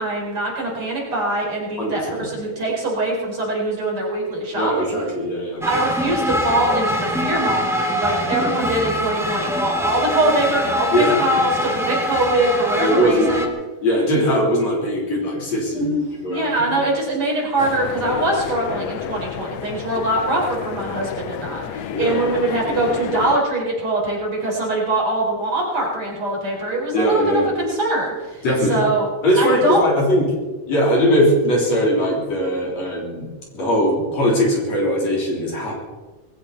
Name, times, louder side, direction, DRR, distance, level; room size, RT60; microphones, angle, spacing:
voice 1, 0.0-5.0 5.6-13.5 15.7-29.1 29.4-29.8, right 1 dB, 40° right, -3 dB, 5.5 m, -23 dB
voice 2, 1.8-2.3 4.6-5.6 8.4-8.5 10.9-11.3 12.8-13.4 13.8-15.9 16.2-16.8 21.9-22.4 22.6-22.8 26.9-27.5 28.4-28.9 29.2-30.3 30.7-33.3 33.5-35.8, equal, 55° left, -2 dB, 4.8 m, -20 dB
sound 1, 5.6-13.5, equal, 5° right, 0.5 m, -24 dB
sound 2, 17.6-23.4, left 8 dB, 70° left, 1.7 m, -31 dB
21.0 x 16.5 x 4.1 m, 1.3 s
omnidirectional pair, 3.7 m